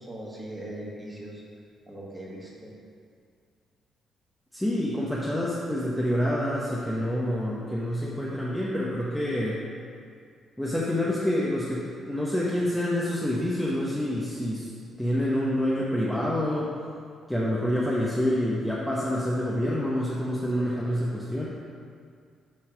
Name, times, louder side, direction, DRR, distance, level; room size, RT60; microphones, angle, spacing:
voice 1, 0.0-1.4 1.9-2.7, right 1 dB, 15° right, -4 dB, 1.6 m, -40 dB
voice 2, 4.5-9.6 10.6-14.7 15.0-16.7 17.3-21.5, left 1 dB, ahead, -7 dB, 0.9 m, -27 dB
7.5 x 3.2 x 6.0 m, 2.2 s
cardioid pair, 90°, 0 cm